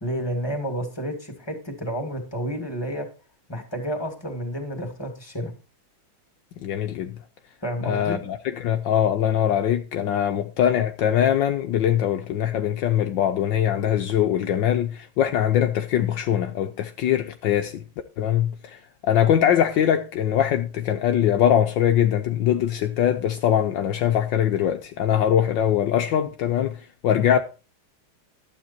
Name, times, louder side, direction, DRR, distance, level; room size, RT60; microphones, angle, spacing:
voice 1, 0.0-3.1 3.5-5.5 7.6-8.2 27.2-27.3, equal, 10° left, 2.5 m, -30 dB
voice 2, 6.6-7.1 7.8-17.8 18.2-18.8 19.0-26.8 27.0-27.4, left 10 dB, 70° left, 1.4 m, -22 dB
12.0 x 8.2 x 4.4 m
omnidirectional pair, 2.2 m